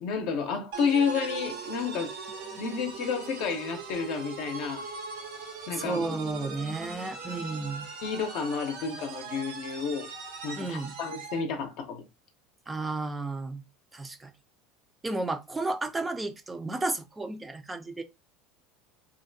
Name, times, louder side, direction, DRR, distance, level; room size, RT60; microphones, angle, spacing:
voice 1, 0.0-2.1 2.6-4.8 5.7-6.2 8.0-10.1 10.4-12.0, left 6 dB, 60° left, 0.6 m, -31 dB
sound 1, 0.7-11.5, right 5 dB, 80° right, 0.8 m, -40 dB
voice 2, 5.7-7.9 10.6-10.9 12.7-13.6 13.9-14.3 15.0-18.0, right 3 dB, 15° right, 0.4 m, -33 dB
2.5 x 2.1 x 2.6 m
supercardioid pair, 120°, 0 cm